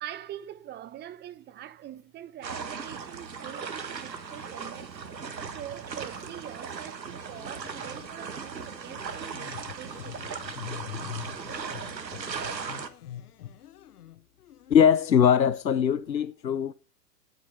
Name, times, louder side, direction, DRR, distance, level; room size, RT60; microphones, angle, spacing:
voice 1, 0.0-5.0 5.5-10.6, right 12 dB, 20° right, 1.0 m, -44 dB
sound 1, 2.4-12.9, right 5 dB, 80° right, 1.5 m, -38 dB
sound 2, 7.3-8.1 8.5-15.5 16.1-16.2, left 10 dB, 65° left, 1.1 m, -44 dB
voice 2, 14.7-16.7, left 8 dB, 90° left, 0.7 m, -21 dB
18.5 x 8.1 x 3.3 m
figure-of-eight pair, 100°, 50 cm